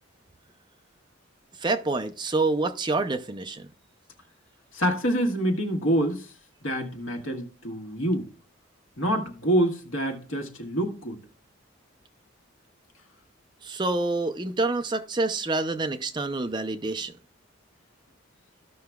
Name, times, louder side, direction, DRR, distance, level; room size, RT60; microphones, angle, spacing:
voice 1, 1.6-3.6 13.6-17.1, right 3 dB, 20° right, 0.5 m, -27 dB
voice 2, 4.7-6.3 6.6-8.3 9.0-11.2, right 1 dB, 80° left, 1.5 m, -26 dB
15.0 x 5.7 x 2.3 m
head